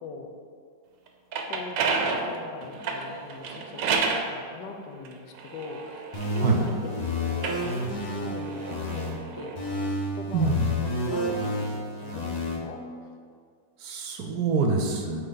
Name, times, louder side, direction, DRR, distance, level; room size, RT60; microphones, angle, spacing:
voice 1, 0.0-0.3 1.4-9.8 10.1-12.8, left 3 dB, 80° left, 3 dB, 1.3 m, -40 dB
sound 1, 1.1-4.3 5.0-6.7 7.3-9.6, right 4 dB, 85° right, 1.4 m, -30 dB
sound 2, 6.1-9.1 9.6-12.6, left 1 dB, 35° left, 0.7 m, -30 dB
voice 2, 10.3-10.7 13.8-15.2, right 4 dB, 65° right, 3 dB, 1.1 m, -25 dB
7.7 x 4.3 x 4.0 m, 2.1 s
omnidirectional pair, 1.9 m